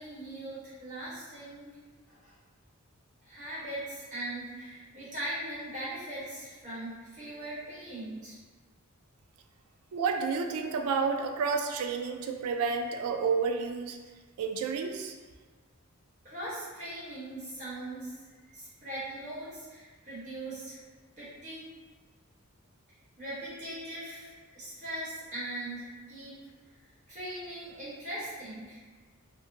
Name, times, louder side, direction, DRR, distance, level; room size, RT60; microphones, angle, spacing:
voice 1, 0.0-1.7 2.1-2.3 3.2-8.4 16.2-18.1 18.5-20.8 21.2-21.6 23.2-26.3 27.1-28.8, right 1 dB, 35° right, -10 dB, 1.1 m, -40 dB
voice 2, 9.9-14.0 14.4-15.1, right 5 dB, 85° right, 4 dB, 0.3 m, -30 dB
2.7 x 2.1 x 2.7 m, 1.4 s
head